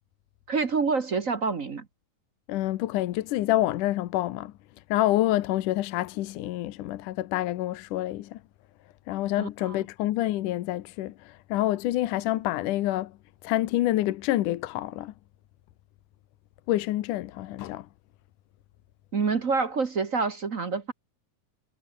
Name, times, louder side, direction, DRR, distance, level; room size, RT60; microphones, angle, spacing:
voice 1, 0.5-1.8 9.4-9.8 19.1-20.9, right 4 dB, 50° right, 0.9 m, -27 dB
voice 2, 2.5-4.5 4.9-8.4 9.1-13.1 13.4-15.1 16.7-17.9, left 15 dB, 80° left, 2.5 m, -27 dB
omnidirectional pair, 3.7 m